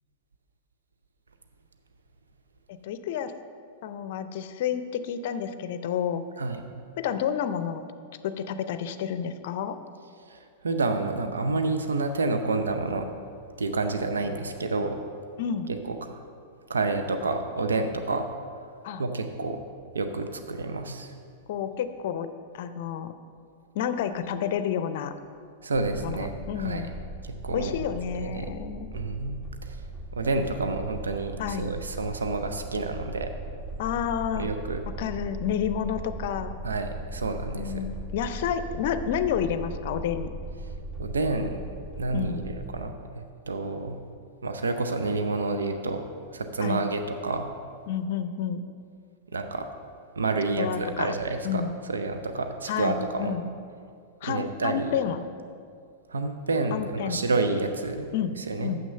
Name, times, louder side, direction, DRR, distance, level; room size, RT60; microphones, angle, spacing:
voice 1, 2.7-3.3 3.8-6.2 7.0-7.8 8.2-9.8 15.4-15.7 18.8-19.0 21.5-22.3 22.5-23.1 23.7-25.1 26.0-26.9 27.5-28.9 31.4-31.7 33.8-34.5 34.9-36.5 37.5-40.3 42.1-42.5 46.6-46.8 47.9-48.6 50.6-51.1 51.4-51.7 52.7-53.5 54.2-55.2 56.7-57.2 58.1-58.3 58.6-58.8, left 8 dB, 60° left, 11 dB, 0.5 m, -30 dB
voice 2, 10.6-13.1 13.6-15.0 15.7-16.1 16.7-18.3 19.0-19.6 19.9-21.1 25.6-26.9 27.2-27.8 28.2-28.5 28.9-29.3 29.6-29.8 30.1-33.3 34.3-34.8 36.6-37.9 41.0-41.6 42.0-44.0 44.4-46.0 46.3-47.5 49.3-49.7 50.2-51.6 51.9-53.3 54.2-54.9 56.1-58.1 58.5-58.7, right 3 dB, 80° right, 6 dB, 0.6 m, -29 dB
sound 1, 25.7-42.9, right 1 dB, 15° right, 1.6 m, -39 dB
7.1 x 6.2 x 6.6 m, 2.3 s
figure-of-eight pair, 100°, 0 cm